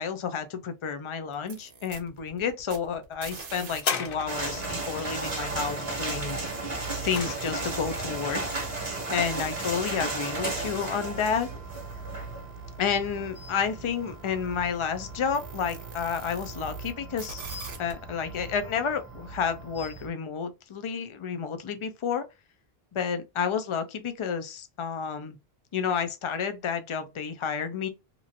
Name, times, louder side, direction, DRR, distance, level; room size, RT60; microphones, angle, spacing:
voice 1, 0.0-6.4 7.0-8.4 9.1-11.5 12.8-17.5 17.8-22.2 22.9-25.4 25.7-27.9, left 6 dB, 45° left, 0.4 m, -30 dB
sound 1, 1.3-3.8 4.1-16.9 17.2-17.9, right 5 dB, 60° right, 0.9 m, -44 dB
sound 2, 3.8-4.8 6.5-7.9 8.7-8.8, left 6 dB, 60° left, 0.8 m, -33 dB
sound 3, 4.3-20.1, right 2 dB, 35° right, 0.9 m, -35 dB
3.0 x 2.4 x 2.6 m
omnidirectional pair, 1.1 m